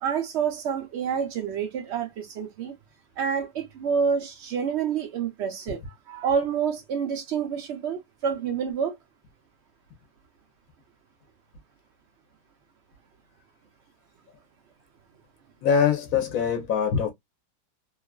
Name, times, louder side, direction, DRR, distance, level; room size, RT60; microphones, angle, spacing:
voice 1, 0.0-2.7 3.2-9.0, right 7 dB, 85° right, 0.6 m, -28 dB
voice 2, 15.6-17.1, left 7 dB, 60° left, 1.1 m, -23 dB
3.0 x 2.3 x 2.2 m
omnidirectional pair, 1.8 m